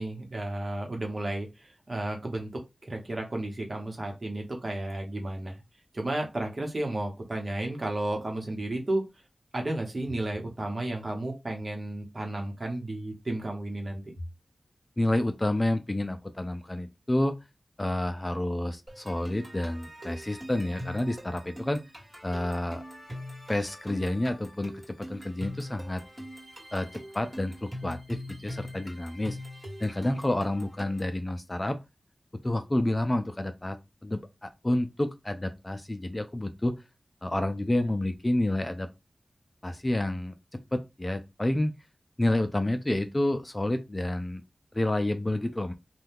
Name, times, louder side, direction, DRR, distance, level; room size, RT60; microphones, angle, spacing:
voice 1, 0.0-2.5 2.8-5.6 5.9-9.1 9.5-14.0, right 1 dB, 50° right, 1.0 m, -33 dB
voice 2, 15.0-17.4 17.8-21.8 22.2-22.8 23.5-26.0 26.7-29.4 29.8-31.8 32.4-36.8 37.2-38.9 39.6-41.7 42.2-44.4 44.7-45.7, left 1 dB, 25° left, 0.4 m, -29 dB
sound 1, 18.9-31.2, equal, 20° right, 1.6 m, -43 dB
2.7 x 2.3 x 3.5 m
wide cardioid pair, 70°, 0 cm